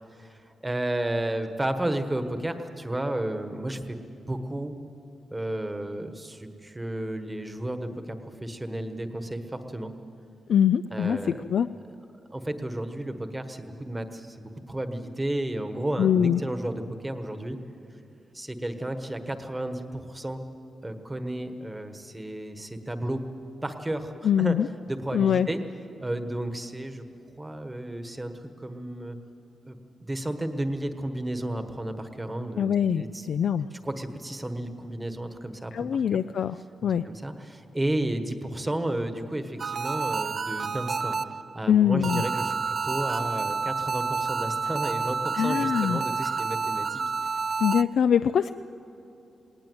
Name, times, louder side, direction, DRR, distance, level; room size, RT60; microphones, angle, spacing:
voice 1, 0.1-4.0 4.3-4.7 5.3-8.1 8.4-9.9 10.9-11.4 12.3-17.6 18.3-20.4 20.8-23.2 23.6-24.6 24.9-25.6 26.0-27.0 27.4-28.3 28.6-29.2 29.7-33.3 33.8-36.0 36.8-41.2 41.5-47.0, right 1 dB, 10° right, 7 dB, 1.2 m, -32 dB
voice 2, 10.5-11.2 11.5-11.7 16.0-16.4 24.2-24.7 25.1-25.5 32.6-33.7 35.7-37.0 41.7-42.2 45.3-46.0 47.6-48.5, left 8 dB, 65° left, 10 dB, 0.4 m, -23 dB
sound 1, 39.6-41.6 42.0-47.8, right 5 dB, 40° right, 0.4 m, -29 dB
19.5 x 18.5 x 7.9 m, 2.9 s
wide cardioid pair, 175°, 0 cm